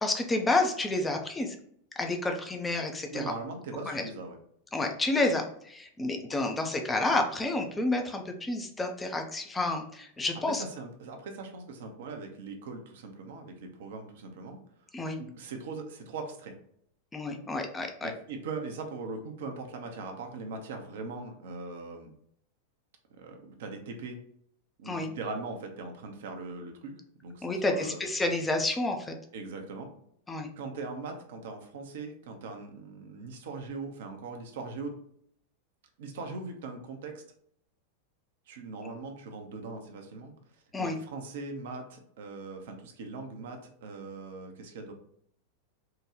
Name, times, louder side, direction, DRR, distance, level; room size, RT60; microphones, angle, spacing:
voice 1, 0.0-1.5 2.0-3.2 3.9-4.0 4.7-10.6 14.9-15.2 17.1-18.1 24.9-25.1 27.4-29.2 30.3-30.5 40.7-41.0, left 2 dB, 15° left, 4 dB, 0.5 m, -30 dB
voice 2, 3.1-4.4 10.2-14.6 15.2-16.5 18.0-22.1 23.1-24.2 24.8-28.1 29.3-29.9 30.6-34.9 36.0-37.2 38.5-40.3 40.8-44.9, right 3 dB, 55° right, 4 dB, 0.6 m, -40 dB
3.6 x 2.2 x 3.0 m, 0.67 s
figure-of-eight pair, 90°, 0 cm